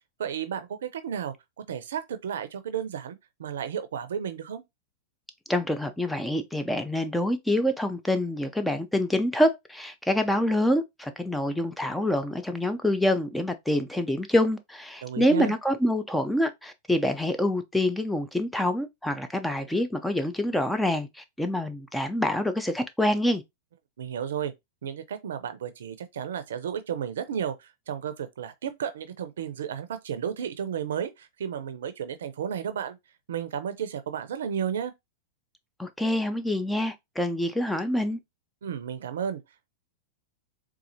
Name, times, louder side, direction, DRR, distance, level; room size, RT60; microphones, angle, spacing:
voice 1, 0.2-1.3 1.7-4.6 15.0-15.5 24.0-24.5 24.8-33.0 33.3-34.9 38.6-39.4, right 8 dB, 75° right, 0.5 m, -33 dB
voice 2, 5.5-23.4 35.8-38.2, left 1 dB, 5° left, 0.5 m, -26 dB
4.1 x 2.4 x 2.7 m
hypercardioid pair, 105°, 0 cm